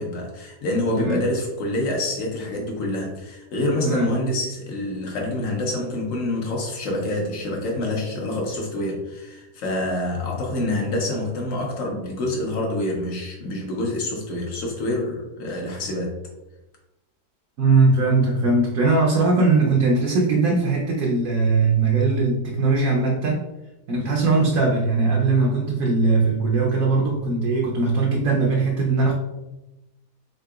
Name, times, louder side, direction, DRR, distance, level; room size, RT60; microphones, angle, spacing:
voice 1, 0.0-16.1, left 1 dB, 55° left, 0 dB, 1.2 m, -27 dB
voice 2, 17.6-23.4 23.9-29.1, right 3 dB, 65° right, -2 dB, 1.0 m, -20 dB
4.1 x 3.8 x 2.3 m, 0.99 s
omnidirectional pair, 1.8 m